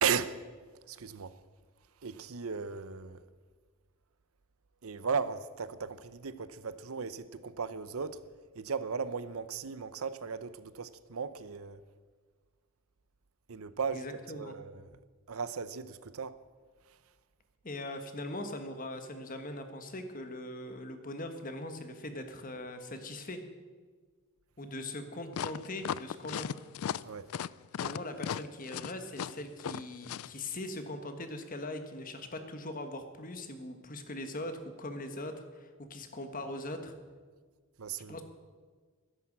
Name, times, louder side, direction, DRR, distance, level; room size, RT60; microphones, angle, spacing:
voice 1, 0.0-0.4 0.9-1.4 2.0-3.2 4.8-8.2 8.5-11.8 13.5-14.9 15.3-16.4 27.0-27.3 37.8-38.2, right 6 dB, 80° right, 0.7 m, -36 dB
voice 2, 13.9-14.6 17.6-23.4 24.6-26.5 27.8-36.9 38.1-38.2, left 1 dB, 40° left, 1.4 m, -41 dB
sound 1, 25.3-30.3, left 8 dB, 80° left, 0.4 m, -36 dB
13.5 x 10.5 x 7.4 m
head